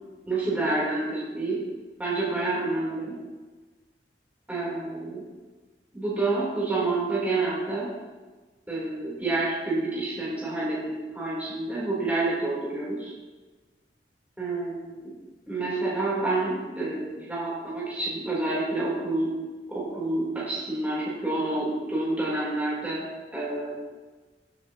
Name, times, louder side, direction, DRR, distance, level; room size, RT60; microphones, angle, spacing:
voice 1, 0.2-1.6 2.0-3.2 4.5-5.2 5.9-7.9 8.7-13.1 14.4-15.1 15.5-19.3 19.7-23.1 23.3-23.8, right 2 dB, 10° right, -7 dB, 3.4 m, -28 dB
17.5 x 9.0 x 2.9 m, 1.3 s
head